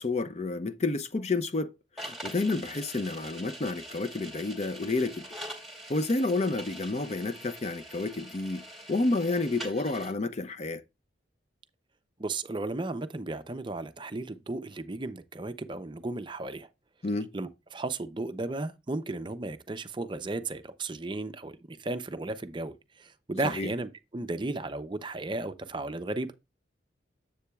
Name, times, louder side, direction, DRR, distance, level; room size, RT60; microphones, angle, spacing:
voice 1, 0.0-5.3 5.9-8.6 8.9-10.8 17.0-17.3 23.4-23.7, left 3 dB, 35° left, 0.5 m, -30 dB
sound 1, 2.0-10.1, right 1 dB, ahead, 2.4 m, -44 dB
voice 2, 12.2-16.7 17.3-22.7 23.0-26.3, right 2 dB, 25° right, 0.5 m, -34 dB
9.8 x 7.6 x 2.3 m
head